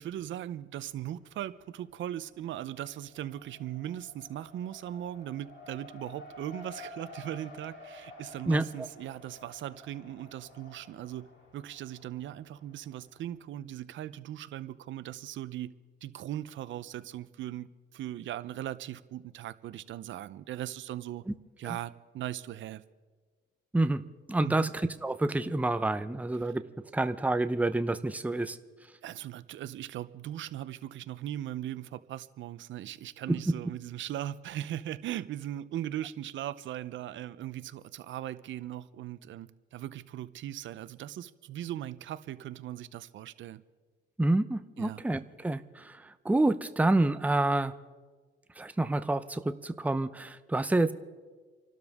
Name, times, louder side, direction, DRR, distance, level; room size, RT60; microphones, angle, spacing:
voice 1, 0.0-15.7 16.0-21.2 21.6-22.8 24.4-24.7 29.0-43.6 44.8-45.0, right 12 dB, 70° right, 15 dB, 0.7 m, -39 dB
Race car auto racing, 0.9-1.7 2.0-13.4, left 2 dB, 70° left, 3.3 m, -51 dB
voice 2, 8.5-8.9 21.6-21.8 23.7-24.0 24.3-26.6 26.9-28.6 33.3-33.4 44.2-47.7 48.6-50.9, right 2 dB, 5° right, 11 dB, 0.7 m, -28 dB
29.5 x 12.5 x 3.6 m, 1.4 s
cardioid pair, 90°, 20 cm